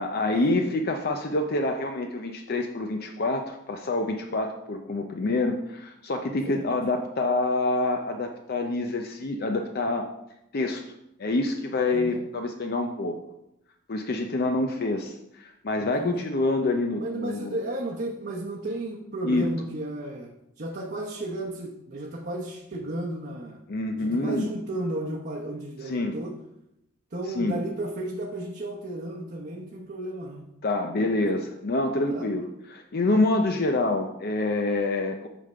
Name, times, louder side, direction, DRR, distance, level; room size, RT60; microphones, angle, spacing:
voice 1, 0.0-10.1 10.5-10.8 11.2-13.2 13.9-17.6 19.2-19.4 23.7-24.5 25.8-26.2 27.3-27.6 30.6-35.3, left 2 dB, 50° left, 4 dB, 0.6 m, -27 dB
voice 2, 15.8-16.3 17.0-20.3 20.6-23.6 24.0-26.3 27.1-30.4 31.1-31.3 32.1-32.3, right 1 dB, 50° right, -3 dB, 0.9 m, -33 dB
8.3 x 3.6 x 6.7 m, 0.84 s
head